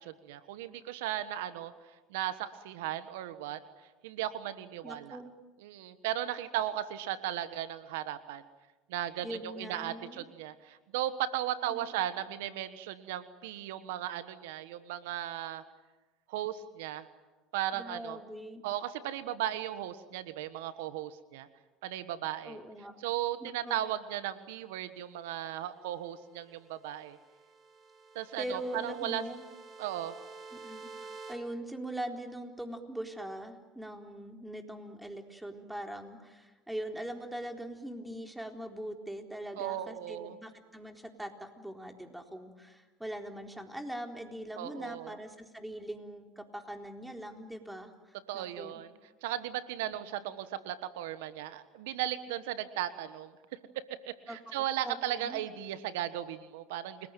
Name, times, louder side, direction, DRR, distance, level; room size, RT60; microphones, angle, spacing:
voice 1, 0.0-1.7 2.1-3.6 4.0-5.2 5.6-8.4 8.9-15.6 16.3-17.1 17.5-18.2 18.6-21.5 21.8-22.6 23.0-27.2 28.1-29.2 29.8-30.1 39.6-40.4 44.6-45.2 48.3-48.9 49.2-53.3 54.1-57.0, right 12 dB, 80° right, 13 dB, 1.3 m, -36 dB
voice 2, 4.8-5.3 9.2-10.2 11.7-12.1 17.7-18.6 22.4-23.0 23.4-23.7 28.4-29.4 30.5-30.9 31.3-48.8 49.9-50.0 54.3-55.4, right 1 dB, 5° right, 4 dB, 4.0 m, -42 dB
sound 1, 26.4-31.3, right 4 dB, 40° right, 5.5 m, -50 dB
30.0 x 21.0 x 9.2 m, 1.2 s
hypercardioid pair, 85°, 0 cm